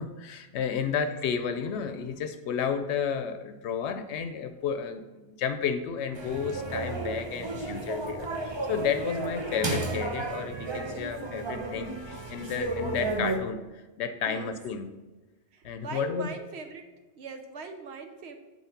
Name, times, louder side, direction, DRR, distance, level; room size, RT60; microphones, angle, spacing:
voice 1, 0.0-14.9 15.6-16.3, left 7 dB, 85° left, 9 dB, 0.8 m, -32 dB
sound 1, 6.1-13.4, right 2 dB, 30° right, 0.6 m, -33 dB
voice 2, 15.5-16.9 17.1-18.4, right 4 dB, 75° right, 6 dB, 1.0 m, -41 dB
5.7 x 4.6 x 5.8 m, 1.1 s
omnidirectional pair, 1.1 m